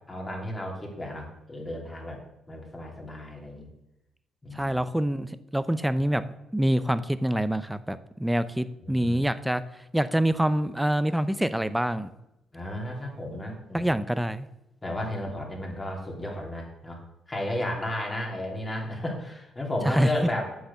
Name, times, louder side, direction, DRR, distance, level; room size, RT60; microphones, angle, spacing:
voice 1, 0.1-2.2 2.5-3.7 4.4-4.8 8.8-9.2 12.5-13.9 14.8-17.0 17.3-20.6, left 1 dB, 20° left, -1 dB, 3.0 m, -33 dB
voice 2, 4.5-6.2 6.5-9.6 9.9-12.1 13.7-14.5 19.9-20.1, right 1 dB, 5° right, 13 dB, 0.6 m, -26 dB
8.0 x 6.5 x 7.0 m, 0.89 s
cardioid pair, 90°, 0 cm